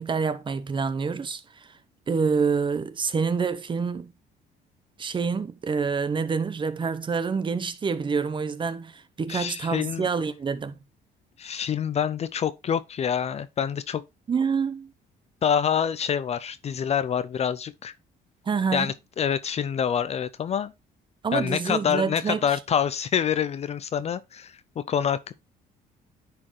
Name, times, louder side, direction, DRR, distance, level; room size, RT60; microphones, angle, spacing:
voice 1, 0.0-1.7 2.1-4.1 5.0-10.8 14.3-14.9 18.5-18.9 21.2-22.6, right 5 dB, 30° right, 0.9 m, -27 dB
voice 2, 9.3-10.1 11.4-14.0 15.4-17.9 18.7-20.7 21.3-25.3, left 8 dB, 40° left, 0.5 m, -26 dB
9.7 x 4.5 x 3.1 m
cardioid pair, 110°, 17 cm